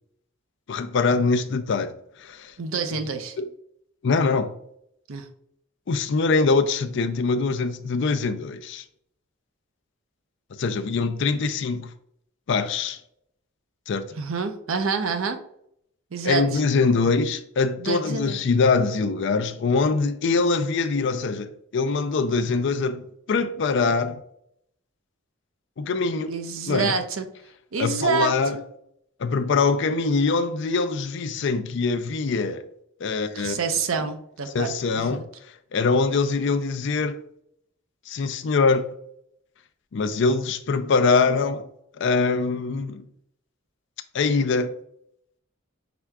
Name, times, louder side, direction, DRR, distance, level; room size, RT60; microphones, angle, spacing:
voice 1, 0.7-1.9 2.2-2.5 3.4-3.5 4.0-4.5 5.9-8.8 10.5-11.9 12.5-13.0 13.9-14.1 16.2-24.2 25.8-26.3 26.7-26.9 27.8-28.6 29.2-32.6 33.0-33.6 34.5-35.2 35.7-37.2 38.1-38.9 39.9-41.7 42.0-43.0 44.1-44.7, left 4 dB, 60° left, 0.4 m, -23 dB
voice 2, 2.6-3.4 5.1-5.3 14.2-15.4 16.1-16.6 17.8-18.4 26.3-27.3 27.7-28.6 33.3-35.2, right 5 dB, 75° right, 0.6 m, -27 dB
5.9 x 3.5 x 2.2 m
head